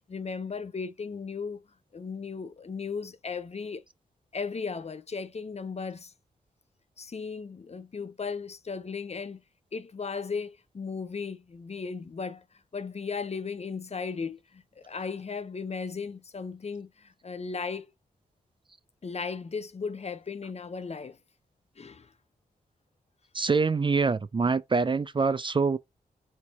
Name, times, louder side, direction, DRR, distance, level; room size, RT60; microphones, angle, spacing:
voice 1, 0.0-1.6 1.9-3.8 4.3-6.1 7.0-9.4 9.7-12.4 12.7-17.9 19.0-21.2 21.8-22.1, left 5 dB, 40° left, 0.7 m, -36 dB
voice 2, 23.3-25.8, right 4 dB, 30° right, 0.4 m, -25 dB
4.5 x 2.6 x 4.1 m
supercardioid pair, 45°, 16 cm